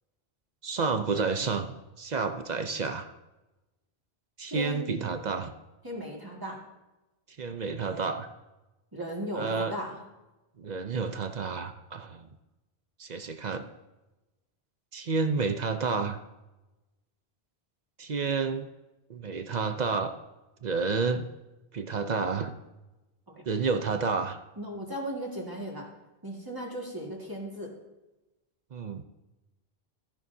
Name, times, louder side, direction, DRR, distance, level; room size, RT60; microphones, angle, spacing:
voice 1, 0.6-3.1 4.4-5.5 7.4-8.3 9.3-9.7 10.6-12.3 13.0-13.7 14.9-16.2 18.0-18.7 19.1-20.1 20.6-21.3 21.7-22.5 23.5-24.4 28.7-29.0, right 4 dB, 50° right, 8 dB, 0.7 m, -30 dB
voice 2, 4.5-5.3 5.8-6.6 8.9-10.0 23.3-23.4 24.6-25.9 26.2-27.7, equal, 20° right, -2 dB, 1.9 m, -37 dB
14.0 x 10.5 x 2.7 m, 1.0 s
omnidirectional pair, 1.1 m